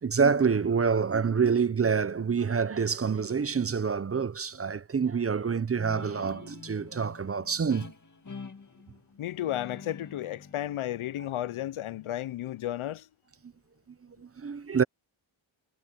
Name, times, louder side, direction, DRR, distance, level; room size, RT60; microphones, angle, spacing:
voice 1, 0.0-7.9 14.2-14.8, right 6 dB, 30° right, 0.6 m, -27 dB
Guitar, 5.7-12.9, left 5 dB, 40° left, 2.3 m, -47 dB
voice 2, 9.2-13.1, left 13 dB, 85° left, 0.6 m, -33 dB
wide cardioid pair, 120°, 48 cm